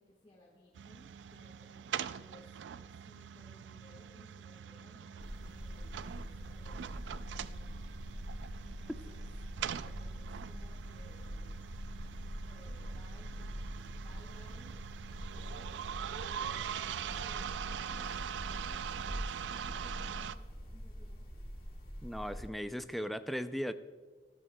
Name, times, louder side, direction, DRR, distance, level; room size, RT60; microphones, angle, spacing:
voice 1, 0.0-7.6 8.6-9.2 9.8-11.6 12.4-14.8 15.3-18.1 18.5-21.2, left 1 dB, 30° left, -3 dB, 1.4 m, -61 dB
sound 1, 0.7-20.4, right 8 dB, 90° right, 0.3 m, -43 dB
sound 2, 5.2-22.5, equal, 55° left, 1.8 m, -44 dB
voice 2, 22.0-23.7, equal, ahead, 10 dB, 0.3 m, -37 dB
14.0 x 12.0 x 2.2 m, 1.5 s
head